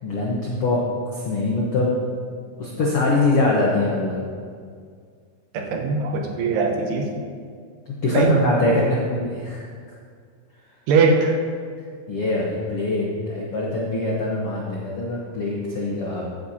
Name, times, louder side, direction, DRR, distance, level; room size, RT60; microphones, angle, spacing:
voice 1, 0.0-0.8 1.1-1.9 2.6-4.2 8.0-9.7 12.1-16.2, left 2 dB, 85° left, -4 dB, 1.2 m, -23 dB
voice 2, 5.5-7.1 8.1-8.4 10.9-11.3, right 4 dB, 85° right, 2 dB, 3.1 m, -20 dB
15.0 x 9.4 x 2.9 m, 2.1 s
omnidirectional pair, 4.6 m